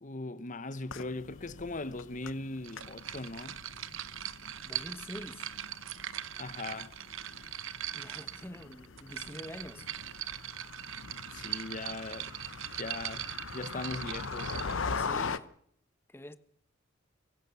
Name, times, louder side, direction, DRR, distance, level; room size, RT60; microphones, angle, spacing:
voice 1, 0.0-3.6 6.4-6.9 11.3-12.4 12.8-14.6, left 2 dB, 40° left, 1.1 m, -39 dB
sound 1, 0.8-15.4, left 4 dB, 75° left, 1.0 m, -42 dB
sound 2, 2.6-14.9, right 12 dB, 80° right, 0.9 m, -41 dB
voice 2, 4.6-5.5 7.9-9.9 15.0-15.5 16.1-16.4, left 1 dB, 10° left, 1.0 m, -45 dB
23.0 x 16.5 x 7.0 m
head